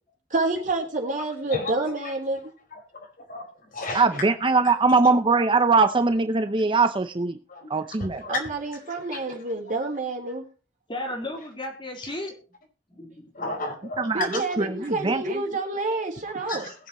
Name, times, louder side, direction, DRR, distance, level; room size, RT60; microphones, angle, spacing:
voice 1, 0.3-2.4 8.3-10.4 14.1-16.7, right 2 dB, 45° right, 1 dB, 3.9 m, -28 dB
voice 2, 2.7-3.4 3.7-4.0 7.5-7.7 8.0-8.4 9.1-9.2 13.3-14.4 16.5-16.7, left 3 dB, 50° left, 1 dB, 4.9 m, -33 dB
voice 3, 3.9-7.4 7.7-8.3 14.0-15.2, right 4 dB, 30° right, 9 dB, 0.7 m, -21 dB
voice 4, 10.9-12.3 12.9-13.4, left 1 dB, 30° left, 0 dB, 3.8 m, -34 dB
21.5 x 7.9 x 3.0 m, 0.35 s
head